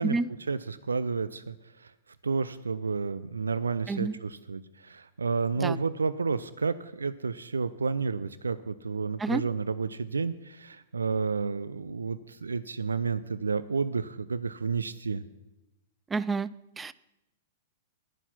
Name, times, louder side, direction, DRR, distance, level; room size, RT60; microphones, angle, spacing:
voice 1, 0.5-1.9 2.2-15.2, right 4 dB, 75° right, 15 dB, 0.4 m, -31 dB
voice 2, 16.1-16.5 16.8-16.9, right 4 dB, 10° right, 18 dB, 0.3 m, -29 dB
9.9 x 9.9 x 5.8 m, 0.93 s
figure-of-eight pair, 100°, 0 cm